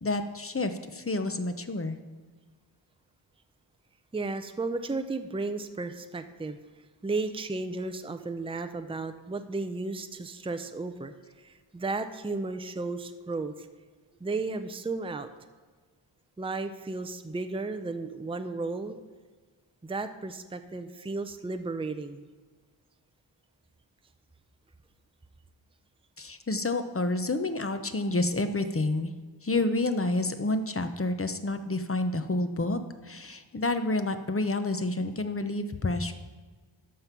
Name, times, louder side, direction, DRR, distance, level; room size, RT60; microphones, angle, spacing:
voice 1, 0.0-2.0 26.2-29.1 29.4-36.1, left 2 dB, 25° left, 9 dB, 0.8 m, -29 dB
voice 2, 4.1-6.6 7.0-13.7 14.2-15.3 16.4-19.0 19.8-22.2, right 3 dB, 10° right, 8 dB, 0.5 m, -34 dB
13.5 x 5.2 x 5.8 m, 1.4 s
wide cardioid pair, 65°, 50 cm